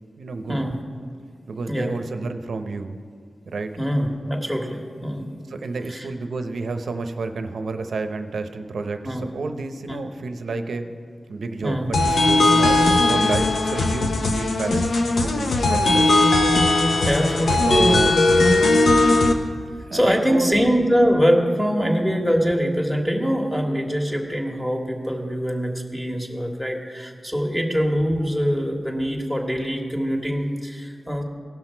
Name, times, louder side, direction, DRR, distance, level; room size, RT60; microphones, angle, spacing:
voice 1, 0.2-0.6 1.5-3.0 3.4-3.8 5.5-10.9 11.3-16.3 17.7-18.2 19.8-20.6, right 3 dB, 80° right, 7 dB, 0.7 m, -30 dB
voice 2, 3.8-5.3 5.9-6.1 9.0-9.3 9.9-10.0 11.6-11.9 12.7-12.8 17.0-17.7 19.9-31.2, equal, 5° left, 1 dB, 1.7 m, -23 dB
sound 1, 11.9-19.3, left 2 dB, 75° left, 0.9 m, -18 dB
17.0 x 6.0 x 4.5 m, 2.1 s
cardioid pair, 60°, 0 cm